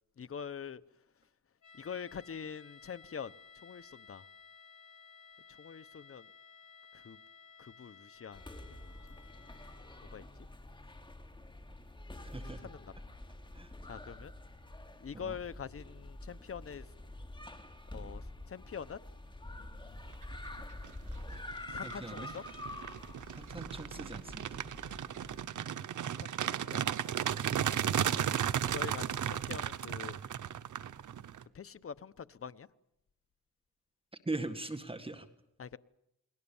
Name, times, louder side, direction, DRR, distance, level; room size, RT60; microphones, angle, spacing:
voice 1, 0.2-0.8 1.8-3.3 3.6-4.2 5.6-6.3 6.9-7.2 7.6-8.4 8.7-8.9 10.1-10.2 12.6-12.9 13.8-14.3 15.0-16.9 17.9-19.0 19.5-20.0 21.7-22.4 26.1-26.9 28.2-30.2 31.5-32.7 35.6-35.8, left 7 dB, 50° left, 14 dB, 1.0 m, -44 dB
sound 1, 1.6-10.3, left 5 dB, 85° left, 7.7 m, -57 dB
sound 2, 8.3-25.4, left 1 dB, 15° left, 3.1 m, -47 dB
voice 2, 12.2-12.7 13.5-13.7 15.1-15.4 21.8-22.3 23.3-24.6 34.3-35.3, right 2 dB, 20° right, 8 dB, 1.9 m, -41 dB
sound 3, 20.6-20.9 21.3-31.4, right 9 dB, 85° right, 1.0 m, -35 dB
29.5 x 21.0 x 7.2 m, 0.83 s
cardioid pair, 95°, 30 cm